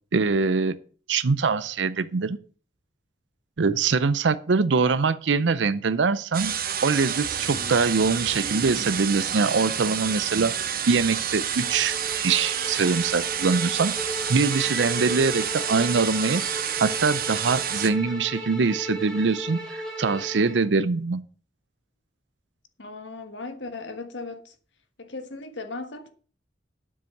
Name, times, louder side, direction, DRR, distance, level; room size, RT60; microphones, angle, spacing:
voice 1, 0.1-0.8 1.1-2.4 3.6-6.5 6.8-10.5 10.9-12.0 12.2-16.4 16.8-21.2, right 4 dB, 80° right, 0.6 m, -23 dB
sound 1, 6.3-17.9, right 9 dB, 55° right, 1.1 m, -29 dB
Bowed string instrument, 11.5-20.6, right 1 dB, 5° left, 3.1 m, -36 dB
voice 2, 22.8-24.5 25.0-26.1, left 3 dB, 90° left, 1.5 m, -37 dB
9.7 x 7.5 x 6.5 m
head